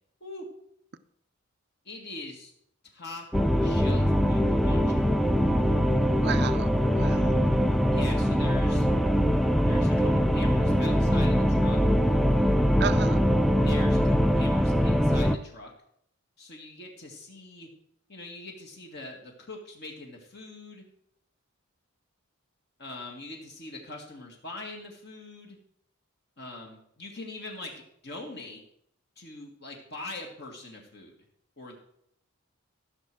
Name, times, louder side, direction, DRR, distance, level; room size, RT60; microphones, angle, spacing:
voice 1, 1.9-2.5 2.9-3.2 3.6-5.1 7.9-8.9 9.7-11.8 13.6-15.7 16.4-17.7 18.1-20.8 22.8-25.6 26.4-28.6 29.2-31.1 31.6-31.8, left 2 dB, 50° left, 1 dB, 2.0 m, -42 dB
sound 1, 3.3-15.4, equal, ahead, 0.4 m, -23 dB
voice 2, 6.2-6.7 6.9-7.4 12.8-13.3, right 6 dB, 50° right, 11 dB, 0.5 m, -32 dB
14.5 x 6.5 x 6.1 m, 0.71 s
head